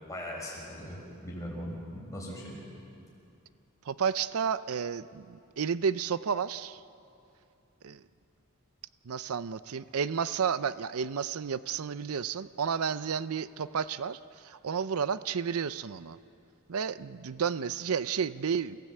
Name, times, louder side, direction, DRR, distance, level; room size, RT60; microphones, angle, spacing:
voice 1, 0.1-2.6, equal, 15° left, -3 dB, 6.1 m, -39 dB
voice 2, 3.9-6.8 7.8-8.0 9.1-16.2 16.7-18.8, right 6 dB, 80° right, 15 dB, 0.5 m, -31 dB
28.0 x 16.5 x 8.3 m, 2.6 s
head